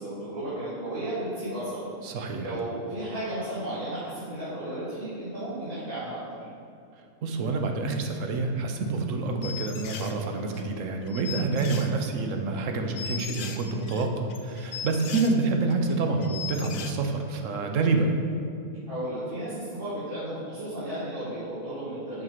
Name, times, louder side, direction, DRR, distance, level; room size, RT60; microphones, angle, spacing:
voice 1, 0.0-1.8 2.4-6.2 18.9-22.2, right 1 dB, 40° right, -12 dB, 2.2 m, -34 dB
voice 2, 2.0-2.5 7.2-18.1, right 3 dB, 65° right, 4 dB, 1.1 m, -27 dB
sound 1, 9.4-10.1 10.5-10.6 11.1-12.2 12.5-12.6 13.0-15.3 15.7-15.9 16.2-16.9, left 6 dB, 75° left, 0.4 m, -38 dB
7.7 x 5.0 x 5.7 m, 2.5 s
omnidirectional pair, 1.5 m